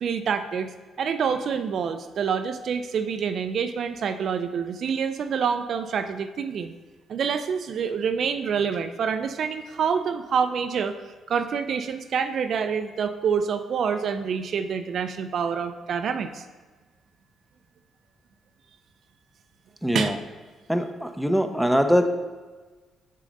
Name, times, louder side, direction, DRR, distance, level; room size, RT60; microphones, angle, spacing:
voice 1, 0.0-0.7 1.0-6.7 7.1-10.9 11.3-16.4 19.9-20.1, right 6 dB, 60° right, 9 dB, 0.4 m, -27 dB
voice 2, 19.8-20.1 20.7-22.1, equal, ahead, 6 dB, 0.6 m, -22 dB
6.5 x 3.7 x 5.2 m, 1.3 s
cardioid pair, 90°, 0 cm